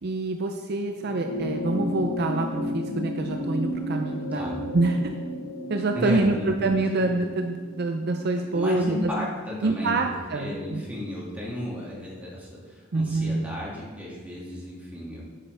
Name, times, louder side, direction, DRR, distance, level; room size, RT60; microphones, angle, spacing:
voice 1, 0.0-5.1 5.7-9.1 9.6-10.8 12.9-13.4, right 2 dB, 50° right, 5 dB, 0.5 m, -26 dB
sound 1, 0.9-9.6 10.8-10.9, left 1 dB, 80° left, 2.7 m, -33 dB
voice 2, 5.9-6.5 8.5-9.9 10.3-15.2, left 1 dB, 10° right, -5 dB, 2.2 m, -34 dB
10.5 x 7.6 x 3.4 m, 1.5 s
head